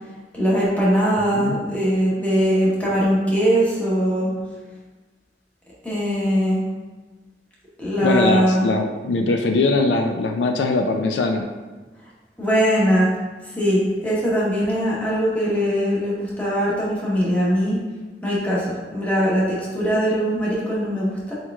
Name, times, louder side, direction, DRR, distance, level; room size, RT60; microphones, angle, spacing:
voice 1, 0.3-4.3 5.8-6.6 7.8-8.7 12.4-13.1 13.6-17.8 18.2-21.3, equal, 10° left, -7 dB, 1.1 m, -21 dB
voice 2, 8.0-11.4, left 3 dB, 80° left, 4 dB, 0.4 m, -21 dB
4.5 x 4.4 x 2.3 m, 1.3 s
head